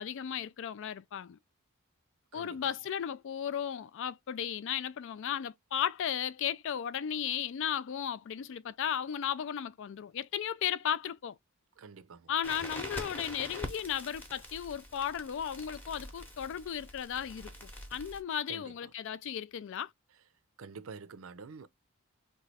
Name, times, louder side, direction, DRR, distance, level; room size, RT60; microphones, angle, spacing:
voice 1, 0.0-1.4 2.3-11.4 12.3-19.9, left 9 dB, 60° left, 0.3 m, -35 dB
voice 2, 11.8-12.3 18.5-18.7 20.6-21.7, right 5 dB, 70° right, 0.5 m, -47 dB
Crackle, 12.4-18.2, left 1 dB, 10° left, 0.8 m, -44 dB
3.1 x 2.3 x 4.0 m
head